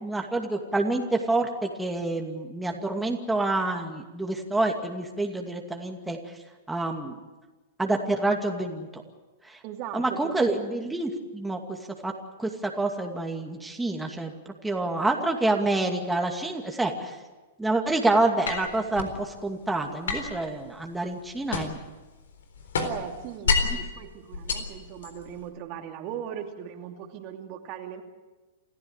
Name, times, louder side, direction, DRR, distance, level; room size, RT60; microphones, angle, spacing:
voice 1, 0.0-6.2 6.7-7.2 7.8-8.9 9.4-9.6 9.9-11.8 12.0-12.1 12.4-17.2 17.6-21.8, right 2 dB, 5° right, 2 dB, 2.5 m, -27 dB
voice 2, 9.6-10.7 22.8-28.0, right 9 dB, 45° right, 4 dB, 2.7 m, -38 dB
sound 1, 18.4-19.2 20.1-21.9 22.2-23.9 24.3-25.4, left 4 dB, 75° left, 3.9 m, -29 dB
28.5 x 14.5 x 8.3 m, 1.2 s
hypercardioid pair, 110°, 0 cm